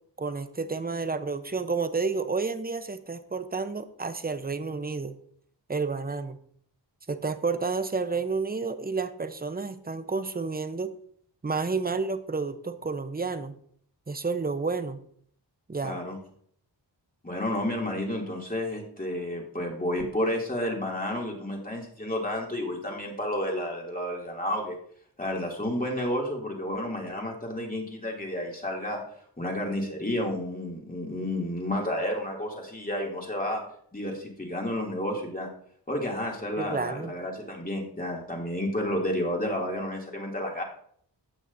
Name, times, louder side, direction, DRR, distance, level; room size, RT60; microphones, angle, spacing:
voice 1, 0.2-5.1 5.7-6.4 7.1-10.9 11.4-13.5 14.1-15.0 15.7-16.0 36.6-37.1, right 4 dB, 20° right, 10 dB, 0.8 m, -30 dB
voice 2, 15.8-16.2 17.2-24.8 25.2-29.0 29.4-33.6 33.9-35.5 35.9-40.6, left 1 dB, 20° left, -1 dB, 2.7 m, -31 dB
16.5 x 6.2 x 2.7 m, 0.62 s
cardioid pair, 65°, 43 cm